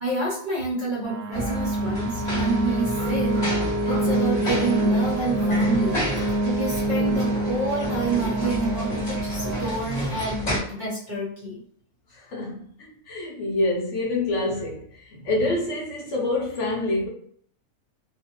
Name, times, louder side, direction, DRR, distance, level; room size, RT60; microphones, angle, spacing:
voice 1, 0.0-3.4 3.8-11.6, right 2 dB, 45° right, 0.7 m, -28 dB
sound 1, 1.0-9.7, right 1 dB, 70° right, 0.9 m, -26 dB
sound 2, 1.3-10.6, equal, 35° left, 0.9 m, -31 dB
voice 2, 12.1-12.7 13.1-17.1, left 2 dB, 65° left, 0.9 m, -27 dB
2.4 x 2.4 x 2.7 m
omnidirectional pair, 1.5 m